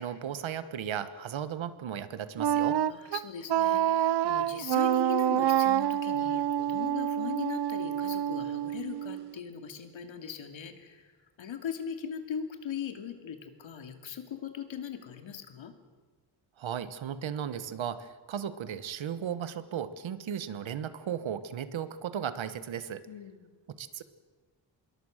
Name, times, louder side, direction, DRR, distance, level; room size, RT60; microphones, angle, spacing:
voice 1, 0.0-2.8 16.6-23.0 23.8-24.0, right 9 dB, 85° right, 12 dB, 1.5 m, -35 dB
Wind instrument woodwind instrument, 2.4-9.3, right 11 dB, 60° right, 0.7 m, -27 dB
voice 2, 2.9-11.0 11.4-15.7 23.1-23.5, left 7 dB, 85° left, 6 dB, 2.6 m, -39 dB
26.0 x 22.5 x 6.6 m, 1.4 s
wide cardioid pair, 165°, 45 cm